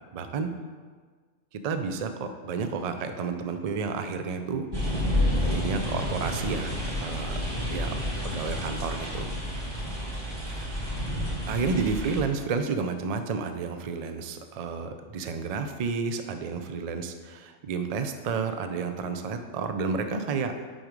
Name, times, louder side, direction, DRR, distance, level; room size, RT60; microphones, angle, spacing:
voice 1, 0.1-0.5 1.5-4.7 5.4-7.4 7.7-7.9 8.3-9.3 10.4-10.7 11.5-20.5, right 5 dB, 65° right, 7 dB, 0.3 m, -31 dB
sound 1, 4.7-12.2, left 1 dB, 20° right, 1.4 m, -30 dB
6.3 x 4.7 x 5.1 m, 1.5 s
omnidirectional pair, 1.3 m